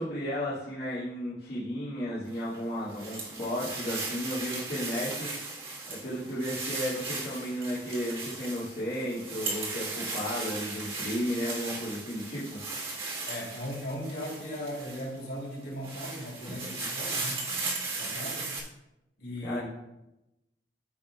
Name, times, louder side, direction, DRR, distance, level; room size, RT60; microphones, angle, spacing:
voice 1, 0.0-5.3 5.9-12.6 19.4-19.6, equal, 60° left, -10 dB, 2.0 m, -34 dB
sound 1, 2.3-15.2 15.6-18.6, right 3 dB, 30° right, 1.5 m, -37 dB
voice 2, 13.3-18.6 19.2-19.6, equal, 80° left, -5 dB, 3.1 m, -38 dB
14.5 x 5.2 x 2.3 m, 0.92 s
head